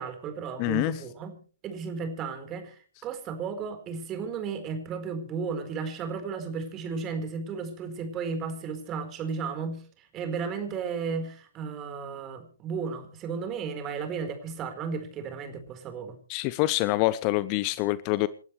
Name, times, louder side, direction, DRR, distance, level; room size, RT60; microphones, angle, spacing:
voice 1, 0.0-1.3 1.6-2.8 3.0-16.2, right 5 dB, 25° right, 7 dB, 4.4 m, -34 dB
voice 2, 0.6-1.0 16.3-18.3, left 18 dB, 35° left, 18 dB, 0.8 m, -26 dB
28.5 x 12.5 x 3.3 m, 0.41 s
figure-of-eight pair, 120°, 0 cm